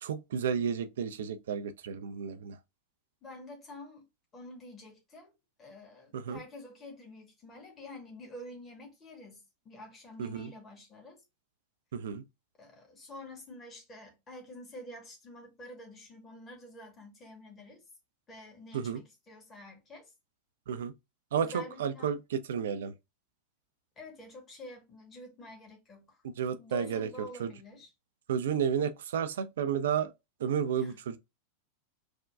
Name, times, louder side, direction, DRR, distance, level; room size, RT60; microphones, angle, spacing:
voice 1, 0.0-2.6 6.1-6.4 10.2-10.5 11.9-12.2 18.7-19.0 20.7-20.9 21.3-22.9 26.4-27.1 27.4-27.5 28.3-30.1 30.4-31.2, right 7 dB, 60° right, 0.4 m, -32 dB
voice 2, 3.2-4.0 4.3-5.3 5.6-11.2 12.6-17.8 18.3-20.1 21.4-22.2 24.0-26.2 26.5-27.9 30.7-31.0, left 2 dB, 25° left, 1.2 m, -48 dB
6.0 x 2.2 x 2.3 m
figure-of-eight pair, 90°, 0 cm